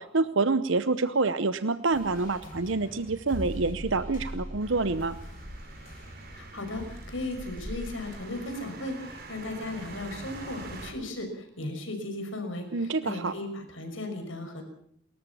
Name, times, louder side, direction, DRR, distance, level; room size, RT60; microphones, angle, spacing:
voice 1, 0.0-5.2 12.7-13.3, right 3 dB, 70° right, 13 dB, 0.8 m, -27 dB
sound 1, 1.9-7.7, equal, 40° left, 7.9 m, -42 dB
sound 2, 4.6-10.9, right 2 dB, 50° right, 4.3 m, -43 dB
voice 2, 6.3-14.6, left 2 dB, 70° left, 6 dB, 6.0 m, -36 dB
29.5 x 14.0 x 7.1 m, 0.65 s
head